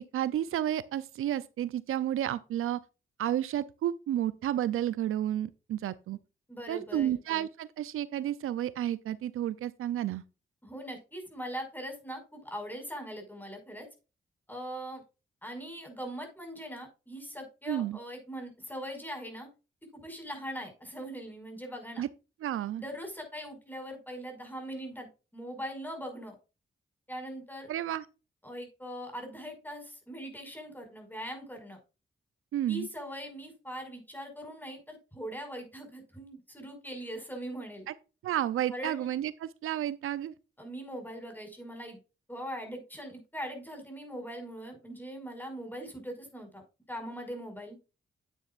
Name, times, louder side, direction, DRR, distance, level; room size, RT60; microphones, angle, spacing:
voice 1, 0.0-2.8 3.2-6.2 6.7-10.2 17.7-18.0 22.0-22.1 22.4-22.8 27.7-28.0 32.5-32.9 37.9-38.0 38.2-40.3, right 11 dB, 85° right, 0.5 m, -31 dB
voice 2, 6.5-7.2 10.6-13.9 14.5-15.0 15.4-19.5 19.9-22.0 22.8-26.4 27.1-27.7 28.4-31.8 32.7-37.9 38.7-39.1 40.6-42.0 42.3-47.8, equal, 10° left, 5.5 m, -41 dB
9.9 x 9.2 x 2.5 m
cardioid pair, 50°, 21 cm